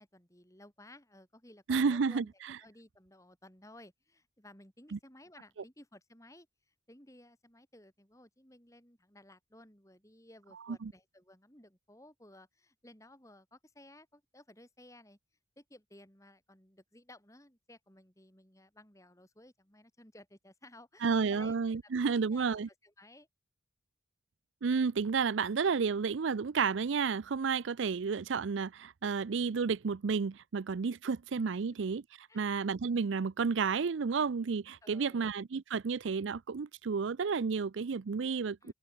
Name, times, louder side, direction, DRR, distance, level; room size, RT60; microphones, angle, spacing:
voice 1, 0.0-2.3 2.6-15.2 15.6-21.6 21.8-22.5 22.8-23.3 32.3-32.5 34.8-35.3 38.6-38.7, left 1 dB, 15° left, 4.6 m, -57 dB
voice 2, 1.7-2.2 4.9-5.0 10.7-10.9 21.0-22.7 24.6-32.0 32.3-38.7, right 5 dB, 85° right, 0.5 m, -31 dB
open air
head